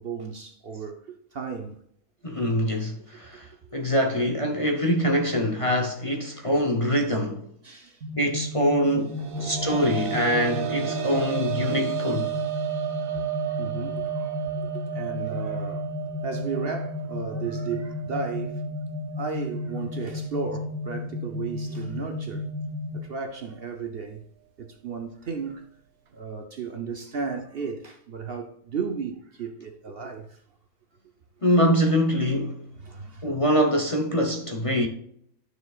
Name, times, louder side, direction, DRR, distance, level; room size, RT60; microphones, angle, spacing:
voice 1, 0.0-1.8 3.2-3.4 7.6-8.0 9.2-9.9 13.0-18.6 19.1-22.5 22.9-24.2 24.6-25.7 26.1-30.4 32.8-33.3, right 5 dB, 50° right, 0.8 m, -35 dB
voice 2, 2.2-7.5 8.2-12.3 31.4-32.6 33.2-34.9, equal, 30° left, 0.8 m, -24 dB
sound 1, 8.0-23.0, left 2 dB, 70° right, 1.4 m, -33 dB
sound 2, 9.0-20.5 20.8-20.9 22.5-22.6, right 13 dB, 90° right, 1.4 m, -33 dB
12.0 x 6.6 x 2.4 m
omnidirectional pair, 1.4 m